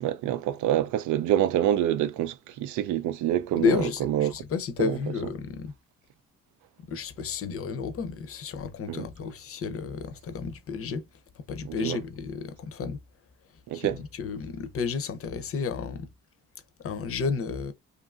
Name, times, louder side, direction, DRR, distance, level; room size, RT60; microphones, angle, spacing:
voice 1, 0.0-4.3 4.8-5.0 8.9-9.1 11.6-12.0 13.7-14.0, right 12 dB, 75° right, 0.4 m, -26 dB
voice 2, 3.6-5.7 6.9-11.1 11.5-13.0 13.7-16.1 16.8-17.7, left 5 dB, 50° left, 0.6 m, -31 dB
2.7 x 2.5 x 2.4 m
cardioid pair, 90°, 30 cm